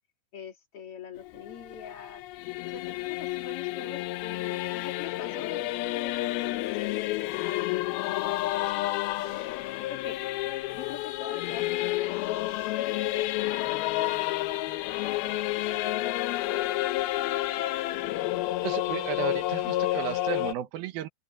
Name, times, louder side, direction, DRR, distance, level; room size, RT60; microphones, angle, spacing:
voice 1, 0.3-2.2 2.6-9.4 9.8-10.2 10.7-14.6 15.1-17.8 19.6-19.8, left 7 dB, 45° left, 2.4 m, -45 dB
Singing / Musical instrument, 1.2-20.5, left 16 dB, 75° left, 2.6 m, -30 dB
voice 2, 18.6-21.1, right 11 dB, 75° right, 2.6 m, -34 dB
open air
omnidirectional pair, 4.6 m